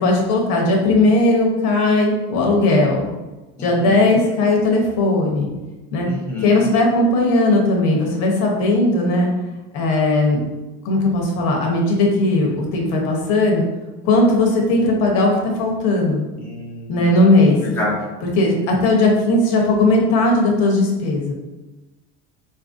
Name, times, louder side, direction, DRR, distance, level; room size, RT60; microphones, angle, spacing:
voice 1, 0.0-3.0 3.6-5.5 5.9-6.1 6.4-9.3 9.7-10.4 10.8-13.6 14.0-15.3 15.6-16.3 16.9-17.7 18.2-21.3, left 2 dB, 65° left, 0 dB, 0.9 m, -17 dB
voice 2, 3.6-4.1 6.1-6.6 16.4-17.1 17.6-17.9, left 4 dB, 10° left, -5 dB, 0.6 m, -27 dB
4.0 x 2.6 x 2.5 m, 1.1 s
cardioid pair, 150°, 30 cm